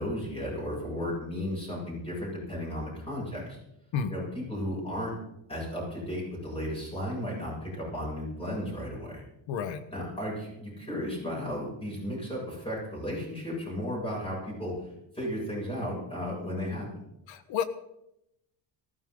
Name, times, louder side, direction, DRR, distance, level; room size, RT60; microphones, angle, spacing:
voice 1, 0.0-3.6 4.1-5.2 5.5-9.2 9.9-14.9 15.1-17.0, equal, 10° left, -4 dB, 7.4 m, -34 dB
voice 2, 9.5-9.8 17.3-17.6, left 7 dB, 75° left, 11 dB, 1.5 m, -30 dB
19.0 x 15.0 x 3.9 m, 0.85 s
cardioid pair, 165°, 45 cm